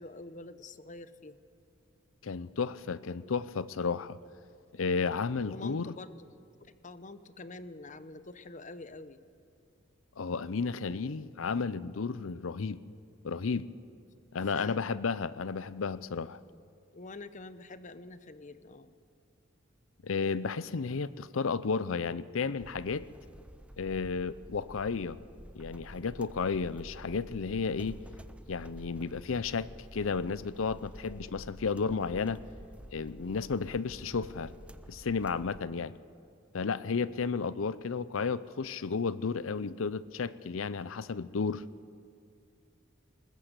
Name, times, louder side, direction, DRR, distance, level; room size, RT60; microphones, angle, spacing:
voice 1, 0.0-1.4 5.5-6.1 6.6-9.2 14.5-14.8 16.9-18.9, left 2 dB, 40° left, 0.9 m, -46 dB
voice 2, 2.2-4.2 4.7-5.9 10.2-12.8 13.2-13.7 14.3-16.4 20.0-23.1 23.8-25.2 25.5-28.0 28.5-32.4 32.9-34.5 34.9-35.9 36.5-41.6, left 5 dB, 80° left, 0.6 m, -33 dB
sound 1, 22.6-35.6, right 1 dB, 5° right, 0.5 m, -49 dB
20.0 x 20.0 x 8.0 m
head